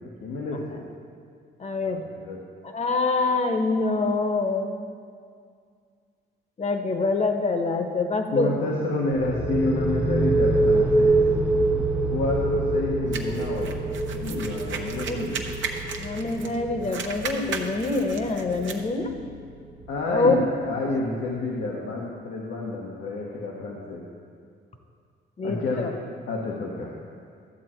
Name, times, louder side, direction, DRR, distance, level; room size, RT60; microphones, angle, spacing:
voice 1, 0.2-0.8 1.8-2.4 8.3-11.1 12.1-15.4 19.9-24.0 25.4-25.9 26.3-26.9, left 2 dB, 85° left, -4 dB, 1.3 m, -29 dB
voice 2, 1.6-2.0 2.6-4.7 6.6-8.6 15.1-15.3 16.0-19.1 20.1-20.4 25.4-25.9, left 3 dB, 35° left, 5 dB, 1.1 m, -25 dB
sound 1, 9.1-20.7, right 2 dB, 10° right, 0.5 m, -26 dB
sound 2, 13.1-16.6 16.8-18.8, right 5 dB, 70° right, 1.0 m, -35 dB
12.5 x 7.4 x 4.5 m, 2.2 s
cardioid pair, 90°, 20 cm